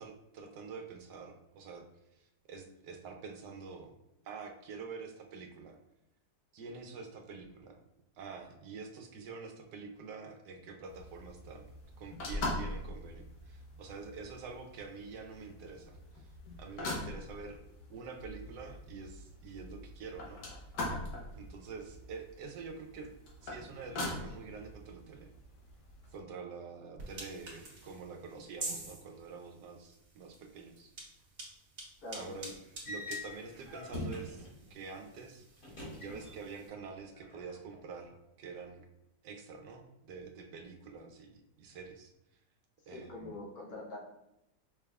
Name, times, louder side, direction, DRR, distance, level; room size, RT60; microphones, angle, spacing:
voice 1, 0.0-1.8 2.2-3.9 4.2-5.8 6.5-7.8 8.1-11.7 12.0-16.3 16.6-17.6 17.9-20.4 21.3-23.1 23.4-25.3 26.1-30.9 32.1-32.5 32.8-35.4 36.0-38.9 39.2-42.1 42.9-43.4, right 4 dB, 85° right, 3 dB, 1.2 m, -47 dB
sound 1, 10.8-26.2, left 1 dB, 80° left, 1.6 m, -43 dB
sound 2, 27.0-36.7, right 2 dB, 55° right, 1.6 m, -48 dB
sound 3, 32.8-34.6 35.6-36.6 36.9-37.7, left 1 dB, 30° left, 1.7 m, -43 dB
voice 2, 42.9-44.0, left 2 dB, 65° left, -3 dB, 1.3 m, -44 dB
5.2 x 3.4 x 2.3 m, 0.89 s
omnidirectional pair, 1.8 m